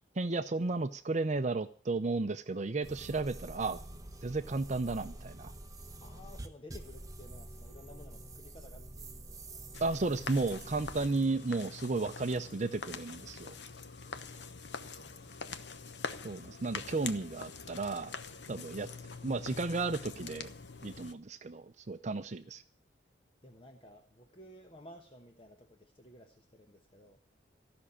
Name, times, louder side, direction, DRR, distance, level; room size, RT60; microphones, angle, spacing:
voice 1, 0.2-3.8 4.2-5.5 9.8-13.5 16.2-18.1 18.5-18.9 19.2-20.5 20.8-22.6, right 3 dB, 40° right, 10 dB, 0.6 m, -33 dB
sound 1, 2.8-11.1, right 1 dB, 20° right, 1.0 m, -47 dB
voice 2, 6.0-9.7 14.1-15.2 23.4-27.2, left 1 dB, 30° left, 4 dB, 1.2 m, -55 dB
sound 2, 9.7-21.1, left 5 dB, 65° left, 1.0 m, -44 dB
15.0 x 6.2 x 9.8 m, 0.43 s
head